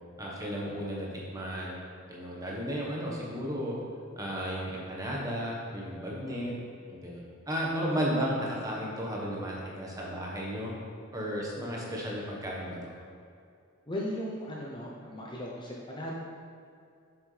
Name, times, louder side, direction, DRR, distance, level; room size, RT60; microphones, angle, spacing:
voice 1, 0.2-1.8 2.1-3.7 4.2-6.5 6.9-10.7 11.1-12.9, equal, 15° right, -4 dB, 1.3 m, -34 dB
voice 2, 13.9-16.1, equal, 20° left, -3 dB, 0.7 m, -37 dB
7.5 x 6.3 x 3.3 m, 2.4 s
head